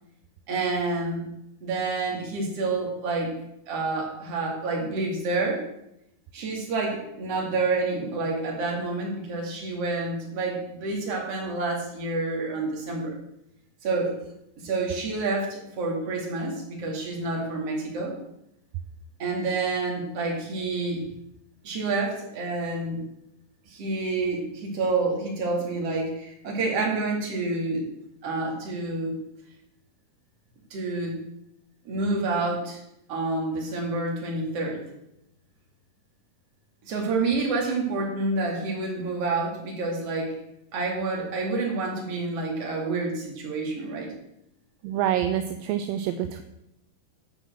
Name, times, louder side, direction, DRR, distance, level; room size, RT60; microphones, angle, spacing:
voice 1, 0.5-1.3 1.6-3.3 3.7-5.6 6.3-13.2 13.8-14.1 14.6-18.1 19.2-21.0 21.6-23.0 23.7-27.9 28.2-29.2 30.7-31.2 31.8-32.8 33.1-34.8 36.8-40.4 40.7-44.1, right 3 dB, 45° right, 0 dB, 3.0 m, -28 dB
voice 2, 44.8-46.4, right 10 dB, 80° right, 8 dB, 2.2 m, -26 dB
10.0 x 5.7 x 7.6 m, 0.82 s
omnidirectional pair, 4.1 m